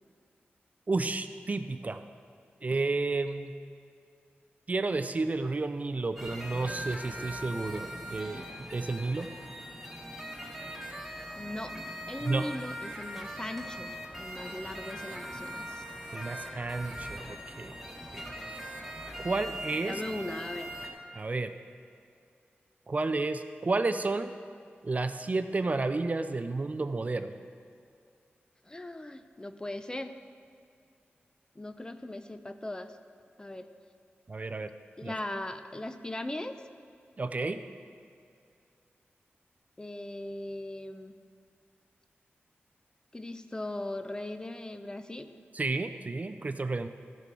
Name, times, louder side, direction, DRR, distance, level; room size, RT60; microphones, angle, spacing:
voice 1, 0.9-2.0 2.6-3.5 4.7-8.4 8.7-9.3 12.2-12.5 16.1-17.7 18.1-18.2 19.2-19.9 21.1-21.5 22.9-24.3 24.8-27.3 34.3-34.7 35.0-35.1 37.2-37.6 45.5-46.9, right 3 dB, 35° right, 9 dB, 0.4 m, -31 dB
sound 1, 6.2-20.9, equal, 5° right, 1.4 m, -41 dB
voice 2, 11.4-13.9 14.2-15.8 19.9-20.7 28.6-30.1 31.6-33.0 33.4-33.7 35.0-36.6 39.8-41.1 43.1-45.3, left 1 dB, 20° left, 9 dB, 0.5 m, -39 dB
13.5 x 6.8 x 4.7 m, 2.4 s
wide cardioid pair, 100°, 4 cm